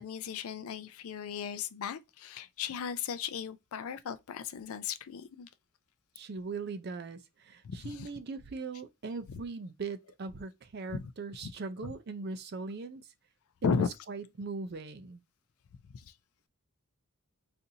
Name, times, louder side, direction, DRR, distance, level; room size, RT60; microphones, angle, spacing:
voice 1, 0.0-5.5 7.6-7.9 10.9-11.1 11.4-11.5 11.8-11.9 13.6-13.9 15.9-16.0, left 6 dB, 75° left, 0.4 m, -35 dB
voice 2, 6.2-13.1 13.6-15.2, right 4 dB, 45° right, 0.4 m, -40 dB
4.0 x 2.5 x 2.7 m
head